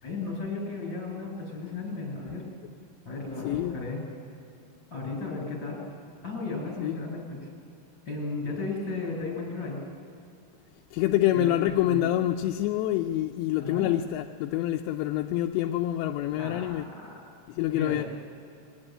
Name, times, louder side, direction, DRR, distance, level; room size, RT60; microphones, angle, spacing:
voice 1, 0.0-2.4 3.1-4.0 4.9-5.8 6.2-7.4 8.1-9.8 11.3-11.5 11.8-12.0 13.6-13.9 16.4-17.1 17.7-18.1, left 3 dB, 25° left, 6.9 m, -34 dB
voice 2, 3.4-3.8 6.8-7.0 10.9-16.9 17.5-18.0, left 13 dB, 80° left, 2.8 m, -26 dB
22.5 x 18.5 x 8.8 m
omnidirectional pair, 5.1 m